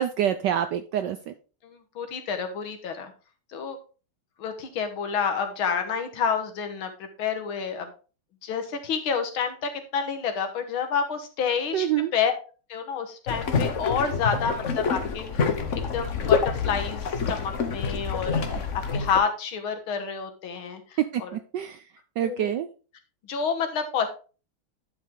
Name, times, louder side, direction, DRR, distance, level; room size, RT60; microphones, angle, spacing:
voice 1, 0.0-1.3 11.7-12.1 21.1-21.8 22.2-22.7, right 10 dB, 75° right, 9 dB, 1.0 m, -26 dB
voice 2, 1.6-3.1 3.5-3.8 4.4-7.9 8.4-11.9 12.1-12.3 12.7-21.3 22.2-22.5 23.3-24.1, left 6 dB, 70° left, 7 dB, 2.0 m, -29 dB
sound 1, 13.3-19.2, left 5 dB, 50° left, 1.0 m, -27 dB
11.0 x 5.3 x 3.7 m, 0.36 s
omnidirectional pair, 2.4 m